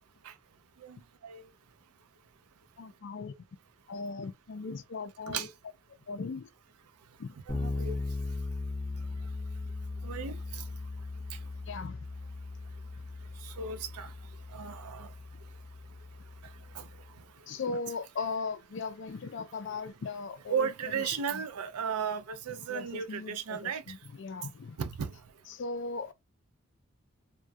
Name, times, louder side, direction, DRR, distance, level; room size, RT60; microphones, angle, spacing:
voice 1, 2.8-3.3 3.9-5.5 6.1-6.5 7.2-7.3 11.7-12.0 17.5-20.7 21.3-21.4 22.7-24.8 25.5-26.1, left 4 dB, 55° left, 0.4 m, -38 dB
Bass guitar, 7.5-17.1, left 3 dB, 15° left, 0.7 m, -39 dB
voice 2, 7.5-8.0 10.0-10.6 13.6-14.1 14.5-15.1 17.7-17.8 20.5-23.8 24.8-25.1, right 6 dB, 85° right, 0.4 m, -35 dB
2.2 x 2.2 x 2.5 m
head